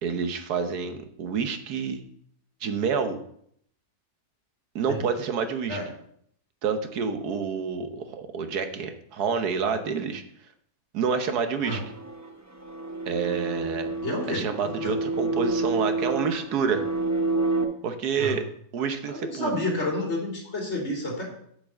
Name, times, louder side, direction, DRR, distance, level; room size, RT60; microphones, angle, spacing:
voice 1, 0.0-2.0 2.6-3.2 4.7-5.8 6.6-10.2 10.9-11.8 13.1-13.9 14.3-16.8 17.8-18.4 18.7-19.5, right 6 dB, 75° right, 8 dB, 1.5 m, -28 dB
sound 1, 11.7-17.6, right 3 dB, 15° right, 0.7 m, -29 dB
voice 2, 14.0-14.9 18.2-18.4 19.1-21.2, left 1 dB, 45° left, -1 dB, 3.3 m, -30 dB
8.6 x 5.9 x 6.4 m, 0.67 s
omnidirectional pair, 1.7 m